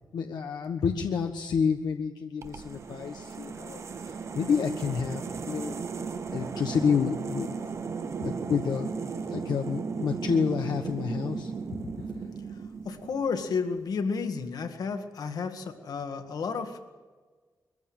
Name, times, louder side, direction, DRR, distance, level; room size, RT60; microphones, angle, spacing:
voice 1, 0.1-3.8 4.3-5.7 6.3-7.6 8.2-8.9 9.3-11.8 12.1-12.2, left 6 dB, 85° left, 4 dB, 1.3 m, -29 dB
sound 1, 2.4-13.5, right 5 dB, 40° right, 1.0 m, -36 dB
voice 2, 12.9-16.8, left 5 dB, 65° left, 8 dB, 1.9 m, -31 dB
22.5 x 15.0 x 8.8 m, 1.4 s
wide cardioid pair, 175°, 7 cm